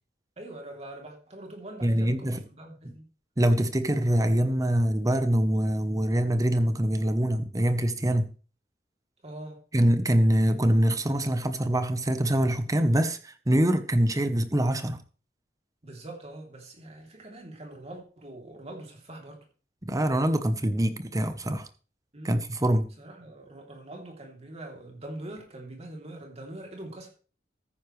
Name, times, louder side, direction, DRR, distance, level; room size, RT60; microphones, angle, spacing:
voice 1, 0.4-3.0 9.2-9.6 15.8-19.4 22.1-22.4 23.0-27.1, right 1 dB, 35° right, 3.2 m, -43 dB
voice 2, 1.8-2.4 2.8-2.9 3.4-8.3 9.7-15.0 19.8-21.7 22.2-22.9, right 1 dB, 20° right, 0.9 m, -24 dB
14.0 x 9.6 x 3.3 m
head